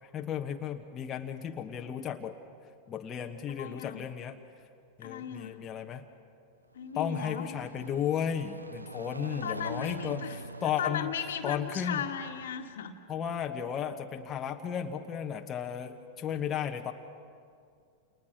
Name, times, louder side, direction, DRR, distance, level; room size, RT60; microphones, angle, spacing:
voice 1, 0.0-2.4 2.9-4.4 5.0-6.1 6.9-11.1 11.4-12.0 13.1-16.9, left 8 dB, 25° left, 3 dB, 1.3 m, -34 dB
voice 2, 3.6-4.1 5.0-5.6 6.7-7.6 9.4-10.4 10.8-13.0, left 8 dB, 60° left, 6 dB, 1.8 m, -36 dB
sound 1, 6.7-12.7, right 2 dB, 80° right, 0.6 m, -44 dB
29.5 x 29.5 x 6.3 m, 2.3 s
figure-of-eight pair, 90°, 0 cm